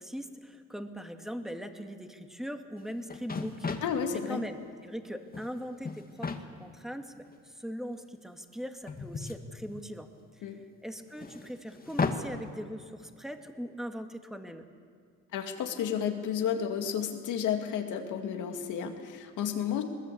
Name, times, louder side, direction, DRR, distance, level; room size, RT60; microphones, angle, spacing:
voice 1, 0.0-3.8 4.1-10.1 10.3-14.7, equal, ahead, 6 dB, 1.8 m, -40 dB
sound 1, 2.8-2.9 3.1-4.0 5.1-5.5 5.8-6.4 7.3-7.4 8.9-10.1 11.2-12.2, left 4 dB, 30° left, 1.8 m, -34 dB
voice 2, 3.8-4.4 10.4-10.6 15.3-19.8, left 8 dB, 85° left, 5 dB, 2.3 m, -32 dB
21.5 x 20.0 x 8.5 m, 2.2 s
cardioid pair, 90°, 30 cm